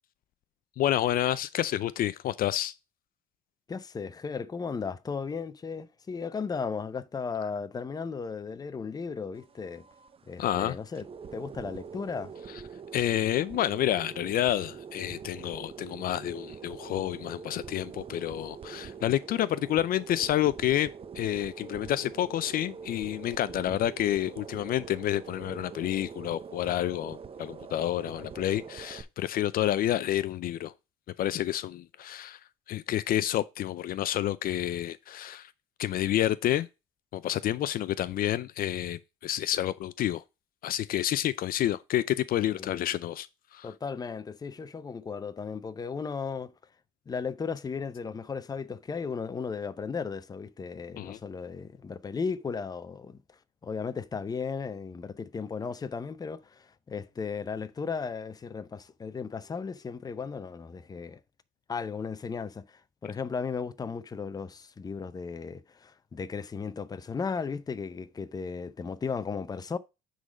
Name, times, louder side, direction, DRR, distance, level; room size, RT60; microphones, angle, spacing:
voice 1, 0.8-2.7 10.4-10.8 12.9-30.7 31.2-32.4 32.7-35.5 35.8-36.7 37.1-40.2 40.6-43.7 51.0-51.2, left 12 dB, 60° left, 0.5 m, -29 dB
voice 2, 3.7-9.8 10.3-11.1 11.3-12.3 42.5-42.9 43.6-46.5 47.1-53.2 53.6-61.2 61.7-69.8, left 5 dB, 20° left, 0.7 m, -35 dB
sound 1, 9.3-29.0, right 6 dB, 35° right, 0.8 m, -44 dB
9.6 x 4.0 x 5.1 m
cardioid pair, 110°, 17 cm